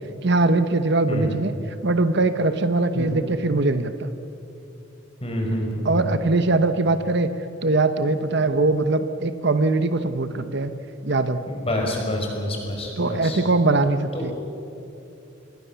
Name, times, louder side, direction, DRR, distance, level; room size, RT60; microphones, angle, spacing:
voice 1, 0.2-1.5 1.8-4.1 5.8-7.3 7.6-10.7 11.0-11.4 13.0-14.3, right 2 dB, 55° right, 10 dB, 1.0 m, -21 dB
voice 2, 5.2-6.0 10.3-10.4 11.7-13.4 14.1-14.3, left 1 dB, 25° left, 1 dB, 5.2 m, -27 dB
27.5 x 21.5 x 7.0 m, 2.7 s
head